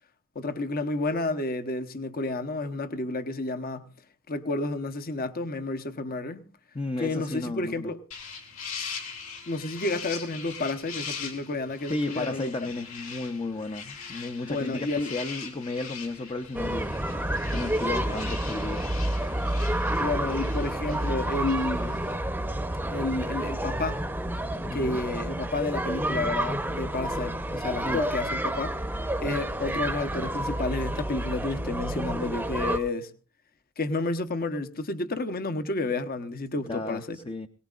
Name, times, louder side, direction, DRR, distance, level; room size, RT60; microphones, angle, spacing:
voice 1, 0.3-3.9 4.3-6.5 7.0-8.0 9.5-12.5 14.5-15.1 20.0-22.0 22.9-24.0 24.7-28.8 29.2-33.1 33.8-37.2, left 2 dB, 45° left, 1.0 m, -30 dB
voice 2, 6.7-7.9 11.9-16.9 17.5-18.9 24.5-25.0 27.8-28.0 36.7-37.5, left 2 dB, 25° left, 0.6 m, -33 dB
sound 1, 8.1-22.1, left 6 dB, 70° left, 3.8 m, -41 dB
sound 2, 16.5-32.8, right 1 dB, 10° right, 0.8 m, -29 dB
22.5 x 18.5 x 2.4 m
head